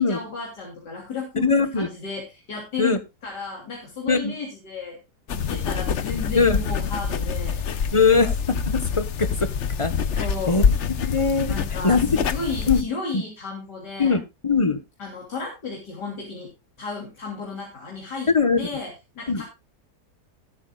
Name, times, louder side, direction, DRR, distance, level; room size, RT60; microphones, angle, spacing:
voice 1, 0.0-2.9 3.2-5.0 5.3-7.6 10.2-10.7 11.5-14.2 15.0-16.5 16.8-18.3 18.6-19.4, left 4 dB, 90° left, -1 dB, 3.9 m, -33 dB
voice 2, 1.4-1.9 2.8-3.0 4.1-4.3 5.5-5.6 6.3-6.6 7.9-9.5 9.8-10.6 11.0-11.5 11.8-12.2 12.7-12.8 13.1-13.2 14.0-14.8 18.3-18.6 19.3-19.4, left 4 dB, 20° left, 11 dB, 1.2 m, -21 dB
sound 1, 5.3-12.8, left 6 dB, 50° left, 1.0 m, -26 dB
19.5 x 8.5 x 2.4 m, 0.25 s
omnidirectional pair, 1.7 m